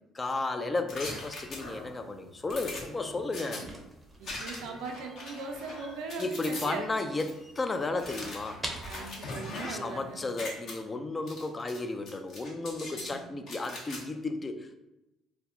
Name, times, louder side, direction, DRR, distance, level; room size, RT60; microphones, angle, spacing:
voice 1, 0.1-3.6 6.2-8.6 9.7-14.7, left 3 dB, 30° left, 7 dB, 0.3 m, -33 dB
sound 1, 0.9-2.0 2.5-3.6 4.2-4.8 5.2-6.7 7.2-7.3 8.0-10.0 10.2-10.7 11.3-11.8 12.1-13.1 13.5-14.0, left 2 dB, 55° left, 0.7 m, -41 dB
sound 2, 1.6-10.5, right 1 dB, 10° right, 0.6 m, -48 dB
voice 2, 3.4-3.8 4.2-6.9 8.9-10.3 12.9-13.3, right 4 dB, 70° right, 3 dB, 0.4 m, -40 dB
sound 3, 4.8-6.0 8.1-9.3, left 1 dB, 90° left, 0.9 m, -49 dB
2.1 x 2.0 x 3.6 m, 0.92 s
hypercardioid pair, 55°, 0 cm